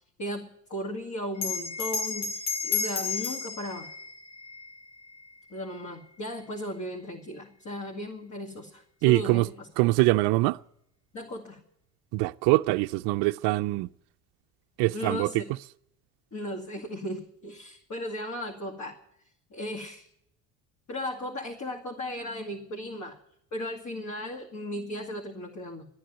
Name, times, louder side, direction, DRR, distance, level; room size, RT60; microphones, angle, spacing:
voice 1, 0.2-3.9 5.5-9.7 11.1-11.6 14.9-15.5 16.3-19.0 19.5-20.1 20.9-23.2 23.5-25.9, left 1 dB, 35° left, 2.3 m, -36 dB
Bell, 1.4-6.2, left 5 dB, 85° left, 2.1 m, -33 dB
voice 2, 9.0-9.5 9.8-10.6 12.1-13.9 14.8-15.3, right 21 dB, 60° right, 0.5 m, -23 dB
13.0 x 10.0 x 9.4 m
hypercardioid pair, 70°, 48 cm